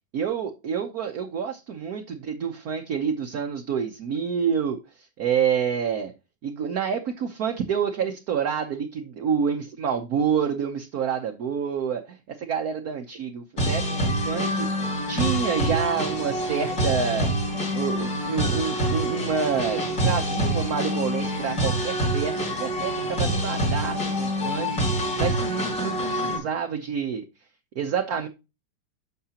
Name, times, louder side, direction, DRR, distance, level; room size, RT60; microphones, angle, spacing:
voice 1, 0.1-6.1 6.4-17.3 17.7-27.2 27.8-28.3, right 7 dB, 60° right, 1.2 m, -28 dB
sound 1, 13.6-26.4, equal, 55° left, 4.7 m, -26 dB
9.6 x 6.6 x 2.8 m
omnidirectional pair, 2.0 m